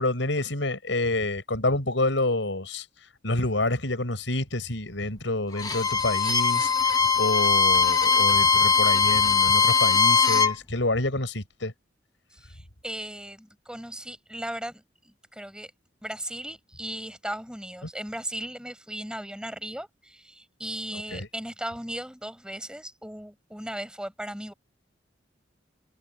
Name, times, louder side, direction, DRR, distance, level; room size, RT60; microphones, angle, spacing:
voice 1, 0.0-2.8 3.2-11.7 21.1-21.3, left 2 dB, 90° left, 5.7 m, -28 dB
Bowed string instrument, 5.5-10.6, left 5 dB, 20° left, 1.0 m, -21 dB
voice 2, 12.3-15.7 16.0-24.5, right 1 dB, 5° right, 6.2 m, -37 dB
head